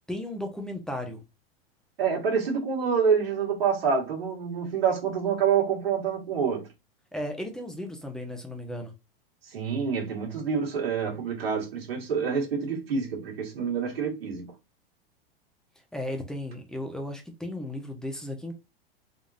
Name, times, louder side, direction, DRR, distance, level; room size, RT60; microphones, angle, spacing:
voice 1, 0.1-1.2 7.1-8.9 15.9-18.6, left 1 dB, ahead, 1.0 m, -35 dB
voice 2, 2.0-6.7 9.4-14.5, right 6 dB, 75° right, 2.0 m, -27 dB
3.8 x 3.5 x 2.7 m
hypercardioid pair, 105°, 30 cm